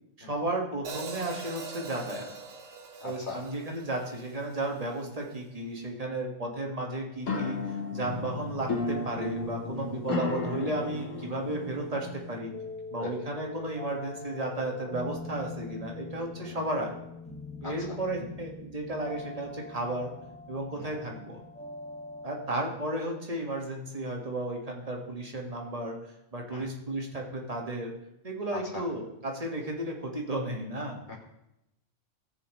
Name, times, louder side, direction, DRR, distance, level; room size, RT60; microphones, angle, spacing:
voice 1, 0.2-2.3 3.0-12.5 12.9-17.0 17.6-20.1 20.5-21.4 22.2-26.0 26.3-27.9 28.2-31.0, right 1 dB, 30° right, 0 dB, 1.8 m, -34 dB
Hi-hat, 0.8-5.0, right 4 dB, 55° right, 1.3 m, -43 dB
voice 2, 3.0-3.4 9.8-10.0 13.0-13.1 16.4-16.6 17.6-18.0 20.7-21.0 26.5-26.6 28.5-28.9 31.1-31.2, left 4 dB, 40° left, -3 dB, 2.5 m, -41 dB
sound 1, 7.2-12.4, left 3 dB, 85° left, 1.5 m, -34 dB
sound 2, 8.0-22.7, left 4 dB, 5° left, 0.6 m, -44 dB
18.5 x 7.1 x 3.2 m, 0.87 s
omnidirectional pair, 1.3 m